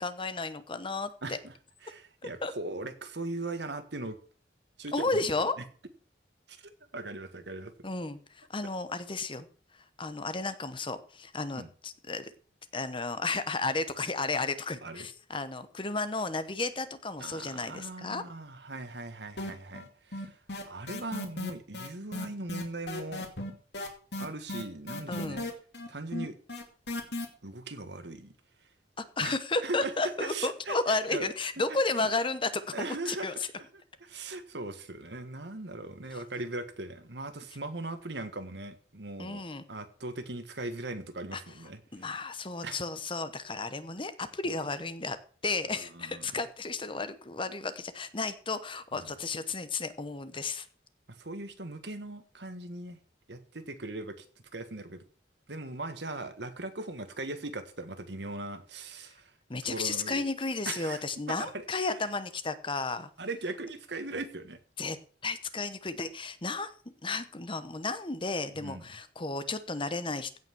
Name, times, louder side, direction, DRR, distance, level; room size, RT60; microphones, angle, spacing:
voice 1, 0.0-1.4 2.4-2.5 4.9-5.6 7.8-9.5 10.0-12.3 12.7-18.2 25.1-25.4 29.0-33.4 39.2-39.6 41.3-41.4 41.9-45.2 45.4-50.7 59.5-63.1 64.8-65.0 65.2-66.7 67.0-70.4, left 3 dB, 30° left, 1.0 m, -33 dB
voice 2, 1.2-1.5 1.8-4.2 4.8-5.2 6.5-7.9 11.5-11.7 14.8-15.1 17.2-20.4 20.7-23.3 24.2-25.5 25.9-26.3 27.4-28.3 29.2-29.9 30.2-31.3 31.7-31.8 32.7-33.7 34.0-42.1 42.6-42.8 45.7-46.3 49.0-49.1 51.1-53.0 53.3-54.2 54.5-55.0 55.5-59.3 59.6-60.2 60.6-61.0 61.3-61.9 63.2-64.6 68.6-68.8, right 2 dB, 70° right, 1.6 m, -39 dB
sound 1, 19.4-19.9 20.1-27.2, left 1 dB, 65° left, 2.5 m, -36 dB
16.0 x 5.8 x 6.2 m
head